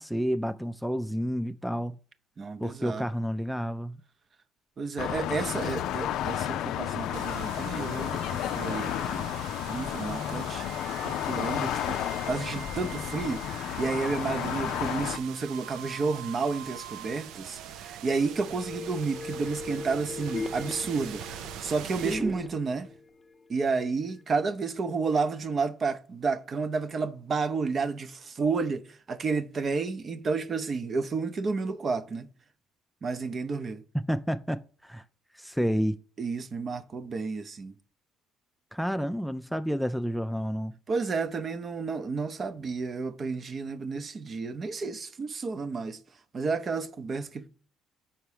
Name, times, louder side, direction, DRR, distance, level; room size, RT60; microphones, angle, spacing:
voice 1, 0.0-2.0 2.6-4.0 22.0-22.3 33.9-35.0 35.3-36.0 38.7-40.7, equal, ahead, 0.4 m, -30 dB
voice 2, 2.4-3.0 4.8-9.3 9.6-10.6 11.0-22.9 23.5-32.3 33.0-33.8 36.2-37.8 40.9-46.0 46.3-47.5, right 4 dB, 45° right, 0.7 m, -31 dB
sound 1, 5.0-15.2, left 11 dB, 75° left, 0.4 m, -32 dB
sound 2, 7.1-23.0, right 10 dB, 75° right, 0.4 m, -43 dB
sound 3, 18.2-23.8 24.2-24.3, left 3 dB, 25° left, 0.7 m, -40 dB
5.7 x 4.5 x 4.9 m
supercardioid pair, 70°, 0 cm